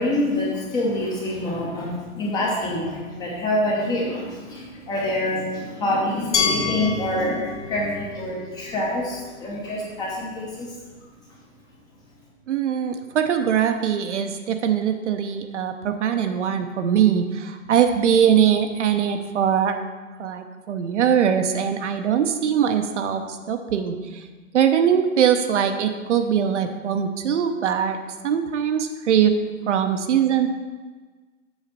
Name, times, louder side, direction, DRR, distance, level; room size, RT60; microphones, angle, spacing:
voice 1, 0.0-10.8, left 1 dB, 10° left, -3 dB, 0.7 m, -26 dB
Glass, 6.3-9.2, left 6 dB, 55° left, 1.2 m, -29 dB
voice 2, 12.5-19.8 20.2-24.3 24.5-28.0 28.2-29.3 29.7-30.5, right 8 dB, 55° right, 7 dB, 0.8 m, -21 dB
7.2 x 4.0 x 6.6 m, 1.3 s
hypercardioid pair, 150°, 42 cm